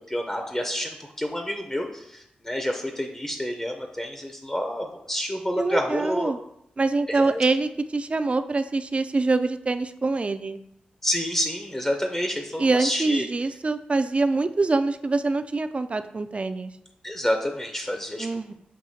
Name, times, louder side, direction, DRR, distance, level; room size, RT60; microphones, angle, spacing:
voice 1, 0.1-6.3 7.1-7.4 11.0-13.3 17.0-18.3, equal, 15° left, 3 dB, 0.5 m, -28 dB
voice 2, 5.6-6.4 6.8-10.6 12.6-16.7 18.2-18.5, right 3 dB, 40° right, 10 dB, 0.3 m, -25 dB
6.4 x 2.7 x 2.7 m, 0.79 s
cardioid pair, 45°, 3 cm